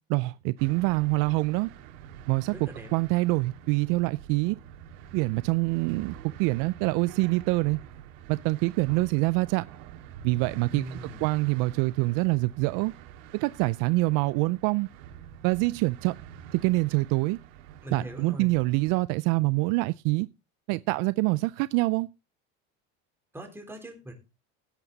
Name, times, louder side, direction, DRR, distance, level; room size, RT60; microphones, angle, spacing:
voice 1, 0.1-1.7 2.3-2.5 2.9-4.6 5.1-7.8 8.3-9.7 10.2-12.9 13.3-14.9 15.4-16.2 16.5-17.4 17.9-20.3 20.7-22.1, right 23 dB, 60° right, 0.5 m, -25 dB
sound 1, 0.6-19.0, right 9 dB, 75° right, 2.2 m, -47 dB
voice 2, 2.5-2.9 10.7-11.3 17.8-18.5 23.3-24.1, right 1 dB, 5° right, 3.7 m, -40 dB
17.0 x 7.9 x 4.0 m
cardioid pair, 140°, 37 cm